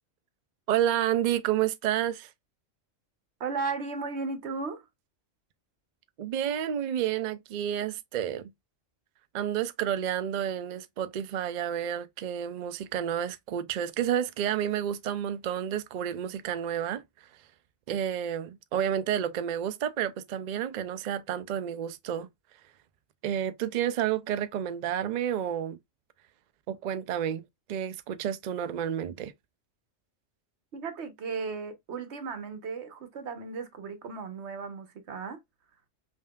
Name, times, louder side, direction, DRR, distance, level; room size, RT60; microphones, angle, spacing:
voice 1, 0.7-2.3 6.2-8.5 9.3-17.0 17.9-22.3 23.2-25.8 26.7-27.4 27.7-29.3, right 10 dB, 80° right, 0.4 m, -30 dB
voice 2, 3.4-4.9 30.7-35.4, right 4 dB, 60° right, 1.1 m, -35 dB
5.5 x 2.7 x 2.2 m
omnidirectional pair, 1.3 m